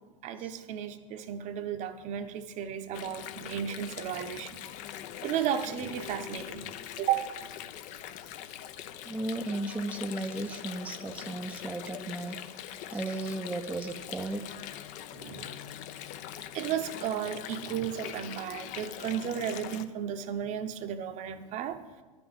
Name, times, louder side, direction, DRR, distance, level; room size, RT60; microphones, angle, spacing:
voice 1, 0.2-4.6 5.2-6.7 7.0-7.3 15.2-15.5 16.5-21.8, right 9 dB, 45° right, 0.9 m, -34 dB
Water, 2.9-19.9, left 11 dB, 45° left, 0.7 m, -42 dB
voice 2, 9.1-12.4 12.9-14.4, right 2 dB, 5° right, 0.6 m, -35 dB
10.0 x 6.1 x 8.8 m
hypercardioid pair, 100°, 17 cm